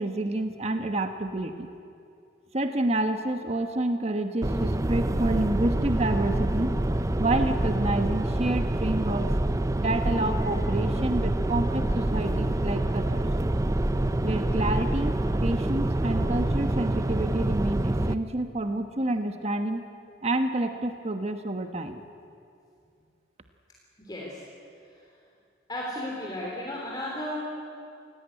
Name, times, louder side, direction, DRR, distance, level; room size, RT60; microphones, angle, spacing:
voice 1, 0.0-1.7 2.5-6.8 7.2-9.3 9.8-13.3 14.2-15.1 15.4-19.8 20.2-22.0, right 2 dB, 35° right, 7 dB, 1.2 m, -28 dB
sound 1, 4.4-18.1, right 1 dB, 20° right, 0.6 m, -26 dB
voice 2, 24.0-24.4 25.7-27.4, left 1 dB, 20° left, -3 dB, 3.5 m, -34 dB
27.5 x 17.5 x 9.7 m, 2.4 s
head